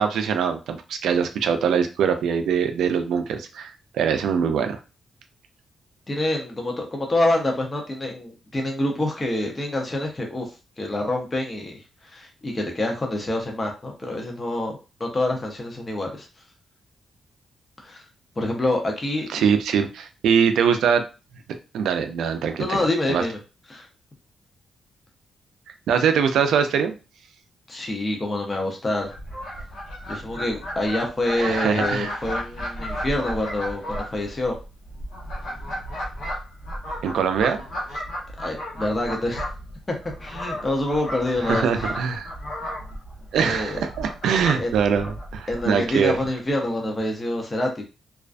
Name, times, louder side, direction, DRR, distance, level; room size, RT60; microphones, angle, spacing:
voice 1, 0.0-4.8 19.3-21.0 21.7-22.8 23.1-23.2 25.9-26.9 31.4-32.1 37.0-37.6 41.5-42.3 43.3-46.1, right 7 dB, 90° right, 7 dB, 0.3 m, -22 dB
voice 2, 6.1-10.5 10.8-11.7 12.0-16.3 17.8-18.0 18.4-19.4 22.6-23.4 23.7-23.9 27.7-29.1 30.1-34.5 38.4-39.4 39.9-40.0 40.2-41.7 43.4-43.9 44.6-44.8 45.5-47.8, left 1 dB, 25° left, 1 dB, 0.6 m, -26 dB
Fowl, 29.1-46.3, equal, 85° left, 0.9 m, -34 dB
2.4 x 2.2 x 2.4 m, 0.32 s
cardioid pair, 105°, 0 cm